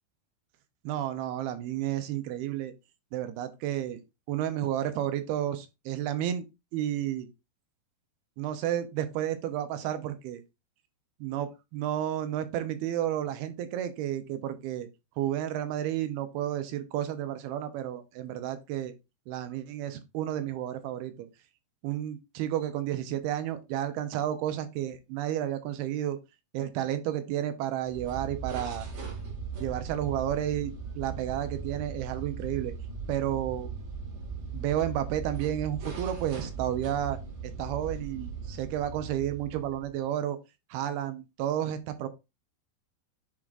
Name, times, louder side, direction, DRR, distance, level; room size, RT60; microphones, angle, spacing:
voice 1, 0.8-2.7 3.1-4.0 4.3-6.5 6.7-7.3 8.4-10.4 11.2-14.9 15.2-18.9 19.3-21.3 21.8-26.2 26.5-28.9 29.6-32.7 33.1-33.7 34.5-37.2 37.4-40.4 40.7-42.1, right 11 dB, 80° right, 2.5 m, -31 dB
sound 1, 27.8-40.0, right 5 dB, 55° right, 1.7 m, -38 dB
10.5 x 3.7 x 2.5 m
omnidirectional pair, 4.8 m